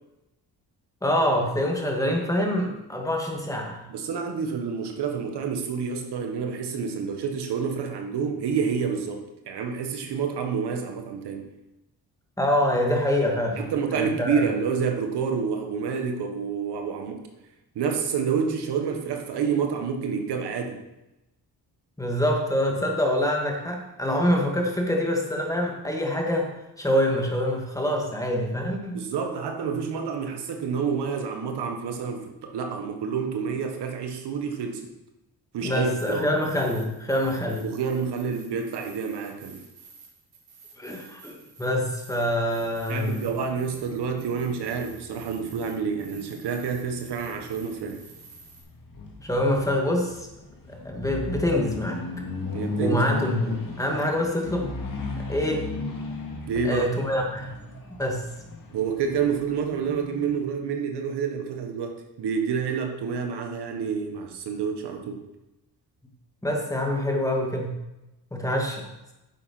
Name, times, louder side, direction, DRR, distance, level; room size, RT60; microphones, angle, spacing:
voice 1, 1.0-3.8 12.4-13.7 13.9-14.4 22.0-26.5 26.8-29.0 35.6-37.7 40.8-43.3 49.2-50.3 50.8-52.0 52.8-54.7 55.3-55.7 56.6-57.6 58.0-58.2 66.4-67.7 68.3-68.8, left 1 dB, 10° left, 1 dB, 1.9 m, -25 dB
voice 2, 3.9-11.5 13.6-17.2 17.7-20.8 28.9-34.9 35.5-36.3 37.6-39.6 42.9-48.0 52.5-53.2 56.5-56.9 58.7-65.2, right 6 dB, 85° right, 4 dB, 1.5 m, -28 dB
sound 1, 36.0-48.6, right 5 dB, 70° right, 3.8 m, -51 dB
sound 2, 43.3-60.4, left 3 dB, 55° left, 2.1 m, -36 dB
9.7 x 7.7 x 4.3 m, 0.95 s
cardioid pair, 105°, 39 cm